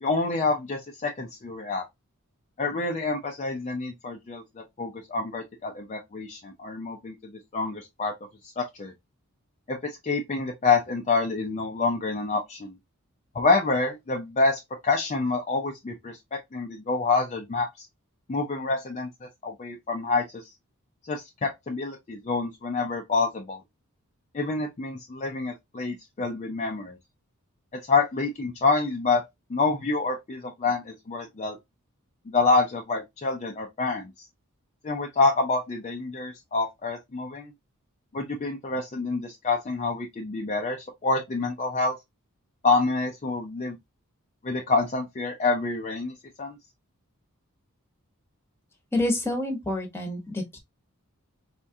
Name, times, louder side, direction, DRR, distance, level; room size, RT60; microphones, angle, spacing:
voice 1, 0.0-1.9 2.6-8.1 8.6-8.9 9.7-12.7 13.3-17.9 18.3-20.4 21.0-23.6 24.3-27.0 27.7-29.2 29.5-31.6 32.3-34.3 34.8-37.5 38.1-41.9 42.6-43.8 44.4-46.6, left 3 dB, 30° left, 0.4 m, -27 dB
voice 2, 48.9-50.6, left 1 dB, 10° left, 0.9 m, -28 dB
4.2 x 2.3 x 2.7 m
head